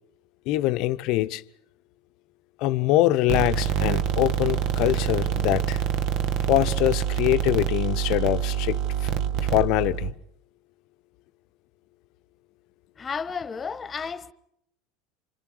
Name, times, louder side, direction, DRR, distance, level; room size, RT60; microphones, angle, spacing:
voice 1, 0.5-1.4 2.6-5.8 6.5-9.1 9.4-10.1, left 16 dB, 55° left, 0.8 m, -24 dB
sound 1, 3.3-10.1, right 9 dB, 50° right, 1.1 m, -26 dB
voice 2, 13.0-14.3, left 5 dB, 25° left, 1.3 m, -32 dB
29.0 x 26.5 x 4.7 m
hypercardioid pair, 85°, 0 cm